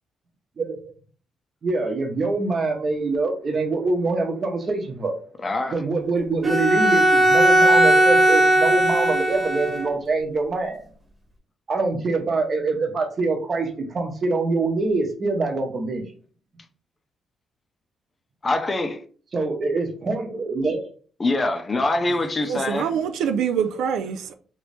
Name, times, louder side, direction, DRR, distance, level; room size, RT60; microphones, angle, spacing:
voice 1, 1.6-5.2 5.7-10.9 11.7-16.0 19.3-20.9, right 3 dB, 45° right, 0.9 m, -24 dB
voice 2, 5.4-5.8 18.4-19.0 21.2-22.9, left 2 dB, 30° left, 0.6 m, -24 dB
Bowed string instrument, 6.4-9.9, right 1 dB, 20° right, 1.4 m, -17 dB
voice 3, 22.4-24.3, right 7 dB, 85° right, 0.3 m, -25 dB
3.1 x 2.6 x 3.3 m
cardioid pair, 90°, 0 cm